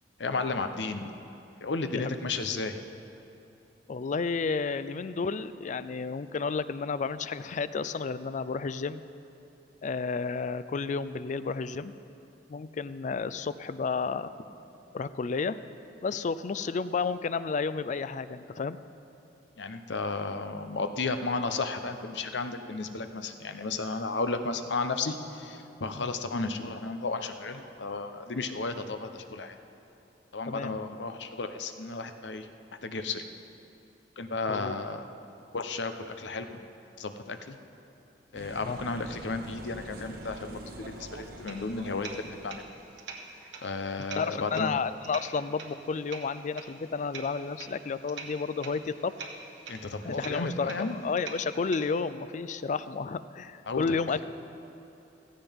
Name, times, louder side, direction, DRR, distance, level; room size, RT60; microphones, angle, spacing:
voice 1, 0.2-1.1 1.6-2.8 19.6-29.6 30.3-32.5 32.8-33.2 34.2-35.0 35.5-36.6 37.0-37.6 38.3-42.7 43.6-44.7 49.7-51.0 53.7-53.8, left 3 dB, 75° left, 8 dB, 0.8 m, -33 dB
voice 2, 3.9-9.0 9.8-11.9 12.5-14.3 14.9-15.6 16.0-18.8 25.9-26.1 30.5-30.7 34.5-34.7 38.6-38.8 44.2-49.3 50.0-54.2, left 4 dB, 45° left, 14 dB, 0.4 m, -31 dB
sound 1, 38.3-43.0, right 1 dB, 55° right, 1.2 m, -45 dB
sound 2, 41.3-51.8, right 4 dB, 90° right, 1.4 m, -46 dB
15.5 x 15.5 x 3.6 m, 2.8 s
head